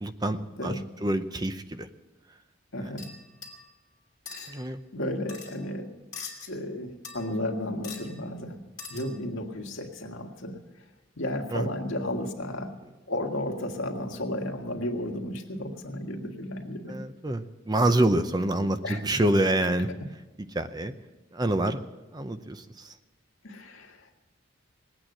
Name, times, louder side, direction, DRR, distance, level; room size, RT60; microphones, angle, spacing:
voice 1, 0.0-1.9 4.5-4.8 11.5-11.7 16.9-19.9 20.5-20.9 21.3-21.8 22.1-22.9, right 1 dB, 20° right, 10 dB, 0.6 m, -27 dB
voice 2, 2.7-3.1 4.3-5.9 6.5-8.6 8.9-10.6 11.2-12.7 13.1-17.0 18.8-19.3 23.4-24.2, left 1 dB, 80° left, 2 dB, 1.8 m, -33 dB
sound 1, 3.0-3.7 4.3-4.5 5.3-5.6 6.1-6.5 7.0-7.5 7.8-8.1 8.8-9.2, left 5 dB, 20° left, 2.7 m, -42 dB
19.0 x 8.9 x 7.8 m, 1.1 s
head